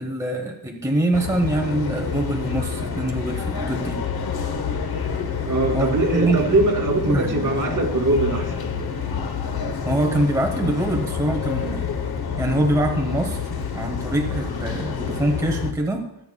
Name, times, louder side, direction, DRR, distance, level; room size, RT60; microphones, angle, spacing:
voice 1, 0.0-4.0 5.7-6.5 7.1-7.5 9.8-11.9 12.4-13.4 13.7-16.1, right 1 dB, 10° right, 2 dB, 0.9 m, -24 dB
sound 1, 1.1-15.7, left 6 dB, 70° left, 1.0 m, -28 dB
voice 2, 5.4-8.6, right 2 dB, 55° right, 0 dB, 2.3 m, -22 dB
23.5 x 8.7 x 2.3 m, 0.85 s
wide cardioid pair, 175°, 39 cm